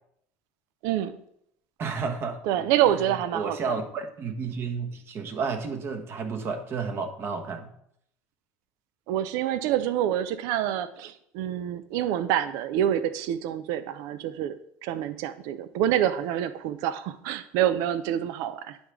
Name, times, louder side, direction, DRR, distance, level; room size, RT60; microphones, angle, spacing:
voice 1, 0.8-1.2 2.4-3.7 9.1-18.8, right 11 dB, 70° right, 13 dB, 0.5 m, -27 dB
voice 2, 1.8-2.4 3.1-7.7, right 5 dB, 40° right, 6 dB, 1.2 m, -31 dB
9.2 x 3.5 x 6.1 m, 0.72 s
supercardioid pair, 110°, 6 cm